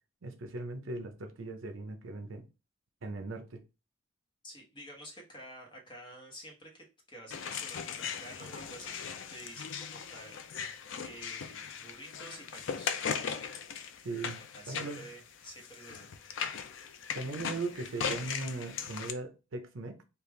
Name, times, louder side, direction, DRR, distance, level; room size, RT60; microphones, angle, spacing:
voice 1, 0.2-2.5 3.0-3.6 14.0-14.4 14.7-15.1 17.1-20.0, right 3 dB, 75° right, 0.6 m, -39 dB
voice 2, 4.4-9.0 9.3-13.1 14.5-16.1, equal, 25° left, 1.0 m, -50 dB
sound 1, 7.3-19.1, left 7 dB, 65° left, 0.4 m, -39 dB
3.5 x 2.4 x 3.1 m
head